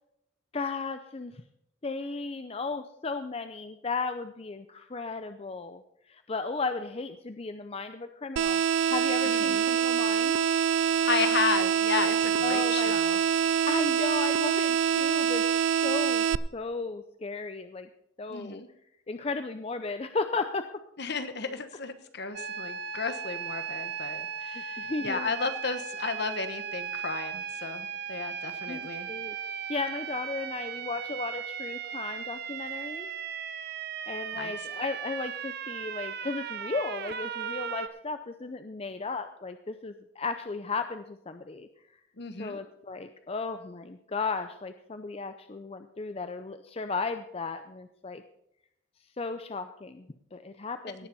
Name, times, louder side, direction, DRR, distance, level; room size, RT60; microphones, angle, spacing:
voice 1, 0.5-1.4 1.8-5.8 6.1-10.4 12.4-13.0 13.7-15.4 15.8-16.2 16.5-17.9 18.2-18.6 19.1-20.6 24.8-25.3 28.7-29.4 29.7-33.1 33.6-33.8 34.1-41.7 42.4-48.2 49.2-51.1, left 4 dB, 30° left, 9 dB, 0.5 m, -35 dB
sound 1, 8.4-16.4, right 8 dB, 65° right, 0.4 m, -25 dB
voice 2, 9.2-9.6 11.1-13.2 18.3-18.7 21.0-29.1 34.3-34.5 42.2-42.6 51.0-51.1, left 5 dB, 55° left, 10 dB, 1.1 m, -33 dB
sound 2, 22.3-37.9, right 7 dB, 50° right, 0.7 m, -37 dB
17.5 x 7.1 x 5.5 m, 0.78 s
head